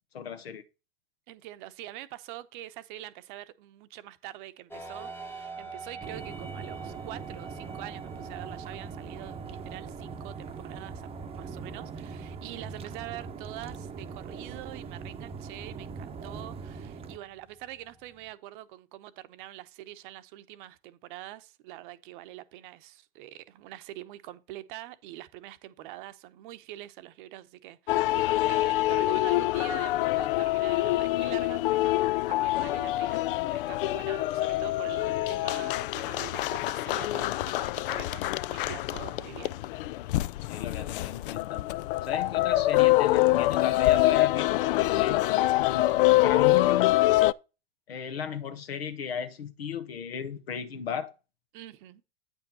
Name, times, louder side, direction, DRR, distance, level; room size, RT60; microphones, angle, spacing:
voice 1, 0.1-0.6 40.4-41.7 42.0-45.2 45.6-47.0 47.9-51.1, left 8 dB, 80° left, 1.4 m, -35 dB
voice 2, 1.3-33.2 33.5-39.6 42.3-42.4 51.5-52.0, right 15 dB, 55° right, 0.9 m, -45 dB
sound 1, 4.7-18.3, right 4 dB, 5° left, 1.0 m, -48 dB
sound 2, 6.0-17.2, right 5 dB, 20° right, 0.8 m, -41 dB
sound 3, 27.9-47.3, left 17 dB, 60° left, 0.4 m, -25 dB
9.0 x 5.5 x 4.0 m
hypercardioid pair, 100°, 30 cm